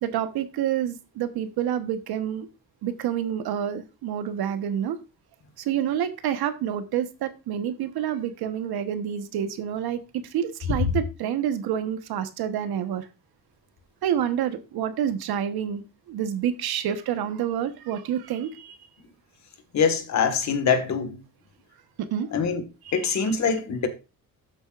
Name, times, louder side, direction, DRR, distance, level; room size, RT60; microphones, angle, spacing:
voice 1, 0.0-2.5 2.8-5.0 5.6-13.0 14.0-15.8 16.1-18.8 22.0-22.3, right 9 dB, 85° right, 1.3 m, -28 dB
voice 2, 19.7-21.2 22.3-22.6 22.9-23.9, left 6 dB, 50° left, 1.7 m, -23 dB
12.5 x 8.1 x 2.5 m
cardioid pair, 170°, 37 cm